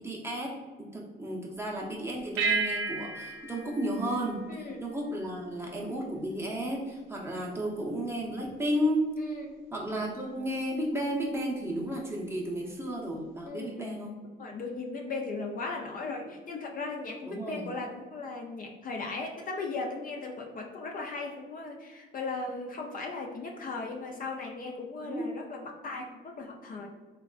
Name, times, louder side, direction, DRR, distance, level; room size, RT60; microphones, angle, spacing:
voice 1, 0.0-9.1 9.7-14.1 17.3-17.7 25.0-25.3, equal, 15° right, -3 dB, 0.6 m, -33 dB
sound 1, 2.4-5.1, right 4 dB, 80° right, 0.5 m, -33 dB
voice 2, 4.5-4.8 9.2-9.5 13.5-14.1 14.4-26.9, left 3 dB, 45° left, 1 dB, 0.4 m, -37 dB
3.4 x 2.2 x 2.3 m, 1.3 s
cardioid pair, 90°, 20 cm